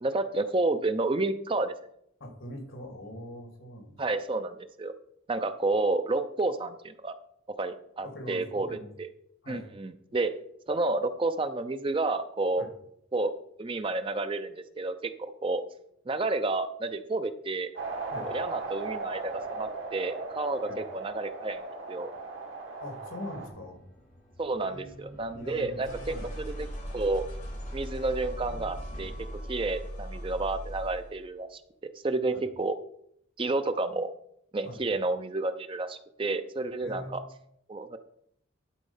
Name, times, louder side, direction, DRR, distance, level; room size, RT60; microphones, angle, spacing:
voice 1, 0.0-1.7 4.0-4.9 5.3-7.2 7.6-9.1 9.5-10.3 10.7-12.7 13.1-13.3 13.6-15.6 16.1-17.7 18.2-21.6 21.9-22.1 24.4-26.7 26.9-27.2 27.7-29.1 29.5-31.6 32.0-32.8 33.4-34.1 34.5-37.2 37.7-38.0, right 2 dB, 25° right, 9 dB, 0.5 m, -30 dB
voice 2, 2.2-4.0 8.0-8.9 9.4-9.7 12.6-12.7 18.1-18.3 20.6-20.8 22.8-23.8 24.7-25.8 26.1-26.3 32.3-32.4 34.6-34.8 36.8-37.3, left 1 dB, 80° left, 4 dB, 2.2 m, -42 dB
sound 1, 17.8-23.5, right 3 dB, 70° right, 2.0 m, -37 dB
sound 2, 23.2-31.1, equal, 35° left, 2.2 m, -40 dB
11.5 x 4.3 x 5.5 m, 0.71 s
head